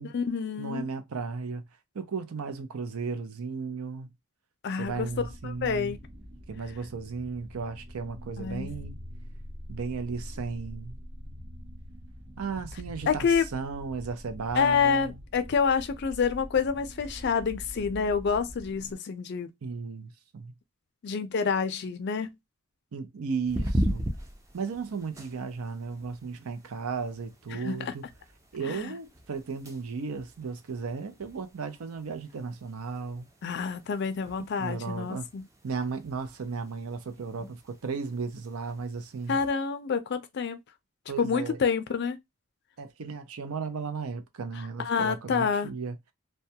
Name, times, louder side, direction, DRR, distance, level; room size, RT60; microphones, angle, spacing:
voice 1, 0.0-0.9 4.6-5.1 5.4-6.0 8.4-8.7 13.1-13.4 14.5-19.5 21.0-22.3 27.5-27.9 28.7-28.9 33.4-35.5 39.3-40.6 41.2-42.2 44.8-45.7, left 6 dB, 50° left, 0.4 m, -28 dB
voice 2, 0.6-1.6 1.9-4.1 4.8-6.0 6.5-9.0 9.7-11.0 12.4-15.2 19.6-20.5 22.9-24.0 24.5-28.0 28.5-33.3 34.6-35.3 35.6-39.4 41.1-41.6 42.8-46.0, right 5 dB, 80° right, 0.5 m, -35 dB
sound 1, 4.8-18.9, equal, 50° right, 0.9 m, -44 dB
sound 2, 23.5-39.5, equal, 15° right, 0.4 m, -39 dB
2.2 x 2.2 x 2.7 m
head